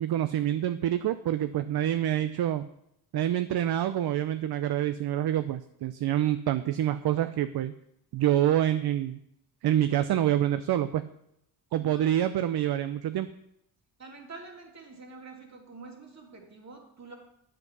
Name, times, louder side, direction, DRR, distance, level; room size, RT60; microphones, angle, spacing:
voice 1, 0.0-2.7 3.1-7.7 8.1-9.2 9.6-11.0 11.7-13.3, right 12 dB, 55° right, 11 dB, 0.6 m, -27 dB
voice 2, 11.8-12.1 14.0-17.1, right 3 dB, 35° right, 1 dB, 3.0 m, -47 dB
8.1 x 7.7 x 6.1 m, 0.78 s
cardioid pair, 70°, 47 cm